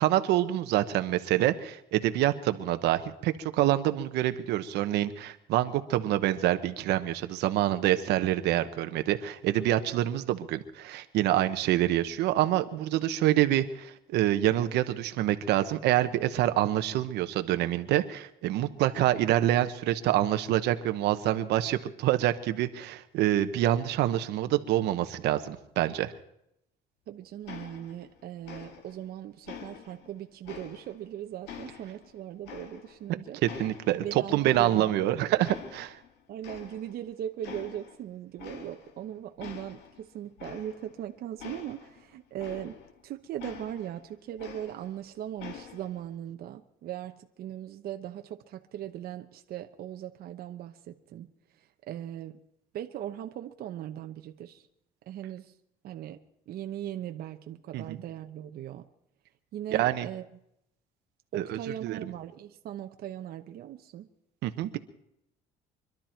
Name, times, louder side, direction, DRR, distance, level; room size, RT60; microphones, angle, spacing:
voice 1, 0.0-26.1 33.4-36.0 57.7-58.0 59.7-60.1 61.3-62.1 64.4-64.8, right 13 dB, 85° right, 9 dB, 1.1 m, -26 dB
voice 2, 27.1-33.4 34.0-34.9 36.3-42.8 43.0-51.3 51.9-52.3 52.7-54.5 55.1-55.5 55.8-56.2 56.5-58.8 59.5-60.2 61.3-64.1, right 11 dB, 65° right, 6 dB, 0.9 m, -39 dB
sound 1, 27.5-28.2 28.4-29.1 29.5-31.1 31.5-33.1 33.5-35.1 35.4-36.1 36.4-37.1 37.4-38.0 38.4-39.0 39.4-43.0 43.4-45.0 45.4-46.0, left 7 dB, 85° left, 1.9 m, -46 dB
24.5 x 12.0 x 4.5 m, 0.78 s
cardioid pair, 110°, 17 cm